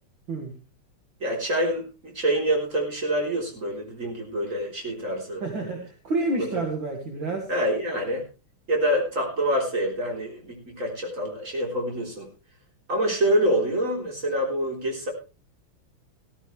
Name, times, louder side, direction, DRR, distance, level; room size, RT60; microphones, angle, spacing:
voice 1, 1.2-5.4 6.4-6.5 7.5-8.2 8.7-12.3 12.9-15.1, right 1 dB, 35° right, 0 dB, 4.1 m, -26 dB
voice 2, 5.4-7.5, right 2 dB, 65° right, 2 dB, 2.7 m, -29 dB
15.5 x 14.0 x 3.2 m, 0.31 s
omnidirectional pair, 2.4 m